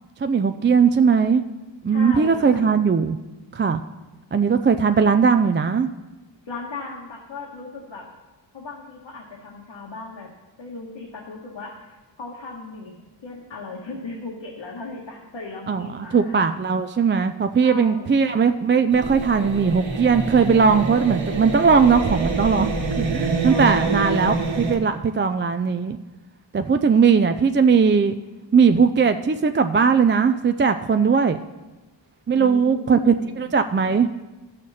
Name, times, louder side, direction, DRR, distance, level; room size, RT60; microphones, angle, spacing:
voice 1, 0.2-1.4 1.8-3.2 3.5-3.8 4.3-5.9 15.7-22.7 23.0-26.0 26.5-28.1 28.5-31.4 32.3-34.1, right 6 dB, 25° right, 8 dB, 0.4 m, -19 dB
voice 2, 1.9-2.7 6.4-8.1 8.5-10.3 10.6-12.9 13.2-16.4 17.6-18.4 23.4-24.1 32.3-33.4, left 3 dB, 70° left, -2 dB, 1.5 m, -36 dB
sound 1, 18.9-24.8, right 3 dB, 85° right, 1.4 m, -26 dB
13.5 x 6.6 x 4.2 m, 1.1 s
cardioid pair, 60°, 45 cm